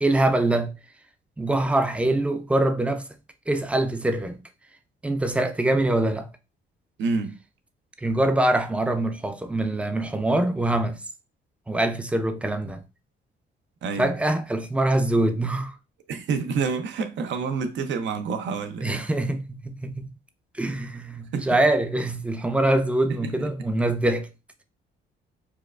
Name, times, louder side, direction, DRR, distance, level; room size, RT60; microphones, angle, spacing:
voice 1, 0.0-0.7 1.4-3.0 3.5-4.4 5.0-6.3 8.0-11.0 11.7-12.8 14.0-15.7 18.8-20.1 20.6-24.3, right 1 dB, 5° right, 0.4 m, -24 dB
voice 2, 7.0-7.4 13.8-14.1 16.1-19.0 21.3-21.6 23.1-23.5, right 5 dB, 70° right, 0.6 m, -28 dB
4.5 x 2.3 x 2.3 m
cardioid pair, 90°, 20 cm